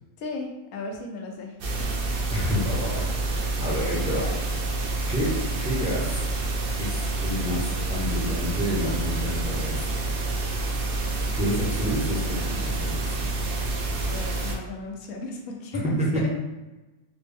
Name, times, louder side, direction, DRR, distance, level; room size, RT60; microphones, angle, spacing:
voice 1, 0.2-1.9 14.0-16.3, left 3 dB, 85° left, 2 dB, 1.1 m, -36 dB
sound 1, 1.6-14.6, right 2 dB, 65° right, 0.5 m, -28 dB
voice 2, 2.3-4.3 5.1-6.2 6.8-10.0 10.7-13.3 16.0-16.3, equal, 10° right, -6 dB, 0.4 m, -29 dB
4.1 x 2.0 x 3.4 m, 1.1 s
omnidirectional pair, 1.5 m